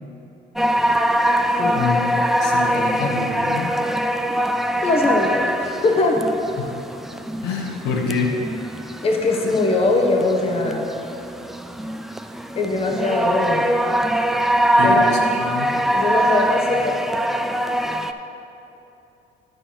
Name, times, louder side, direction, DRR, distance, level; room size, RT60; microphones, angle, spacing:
sound 1, 0.6-18.1, right 1 dB, ahead, 0.3 m, -23 dB
voice 1, 1.7-3.7 6.6-6.7 7.4-8.4 14.8-15.7, left 4 dB, 85° left, 1 dB, 1.1 m, -26 dB
voice 2, 4.8-6.2 9.0-10.9 12.6-13.7 14.8-15.1 15.9-16.9, left 2 dB, 35° left, 1 dB, 1.1 m, -21 dB
11.0 x 4.6 x 5.7 m, 2.8 s
cardioid pair, 110°, 17 cm